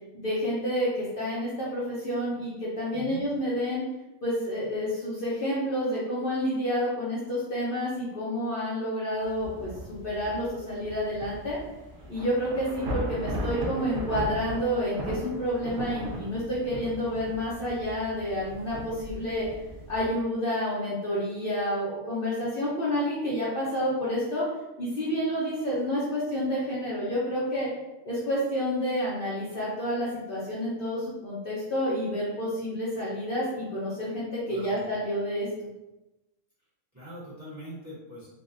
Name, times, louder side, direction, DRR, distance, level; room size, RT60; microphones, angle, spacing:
voice 1, 0.1-3.8 4.2-11.6 12.1-19.5 19.9-24.5 24.8-27.7 28.0-35.5, equal, 50° left, -7 dB, 0.7 m, -29 dB
voice 2, 2.9-3.3 34.5-34.8 36.9-38.3, right 1 dB, 15° right, -10 dB, 0.9 m, -42 dB
Thunder / Rain, 9.2-20.1, right 1 dB, 65° right, 0.9 m, -37 dB
3.4 x 2.3 x 2.5 m, 1.0 s
omnidirectional pair, 1.4 m